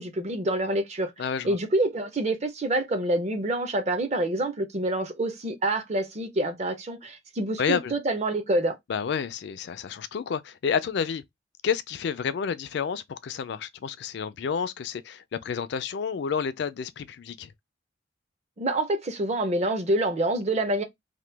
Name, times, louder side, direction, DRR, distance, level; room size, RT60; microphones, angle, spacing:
voice 1, 0.0-1.1 1.4-8.8 18.6-20.8, right 1 dB, 35° right, 0.6 m, -27 dB
voice 2, 1.2-1.6 7.6-7.9 8.9-11.2 11.6-17.5, left 6 dB, 60° left, 0.3 m, -30 dB
2.9 x 2.1 x 3.3 m
head